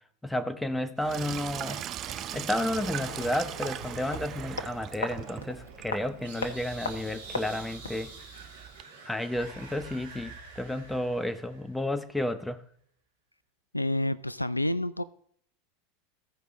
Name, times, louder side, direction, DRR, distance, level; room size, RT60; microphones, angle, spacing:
voice 1, 0.2-1.8 2.3-8.1 9.1-12.6, left 1 dB, 5° left, 11 dB, 0.8 m, -32 dB
Sink (filling or washing), 1.0-8.8, right 12 dB, 35° right, 0.3 m, -40 dB
sound 1, 1.6-11.8, right 3 dB, 70° right, 2.1 m, -46 dB
sound 2, 3.1-8.1 8.3-8.4, left 3 dB, 75° left, 1.1 m, -39 dB
voice 2, 13.7-15.0, left 1 dB, 90° left, 16 dB, 0.3 m, -28 dB
15.0 x 5.1 x 4.0 m, 0.64 s
figure-of-eight pair, 85°, 0 cm